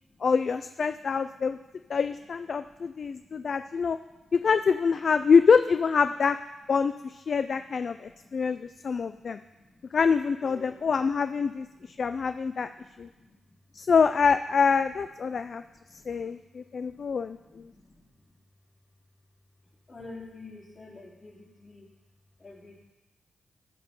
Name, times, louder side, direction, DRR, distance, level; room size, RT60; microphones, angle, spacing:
voice 1, 0.2-1.6 1.9-4.0 4.3-6.4 6.7-9.4 9.9-12.7 13.0-13.1 13.7-15.6 16.1-17.6, left 5 dB, 60° left, 10 dB, 0.3 m, -25 dB
voice 2, 0.9-2.0 2.5-4.3 7.4-10.0 10.4-11.3 11.6-12.4 12.6-13.8 15.2-16.4 16.7-18.4 19.9-21.9 22.4-22.8, left 2 dB, 45° left, -4 dB, 3.6 m, -52 dB
13.5 x 5.3 x 5.4 m, 1.1 s
cardioid pair, 60°, 0 cm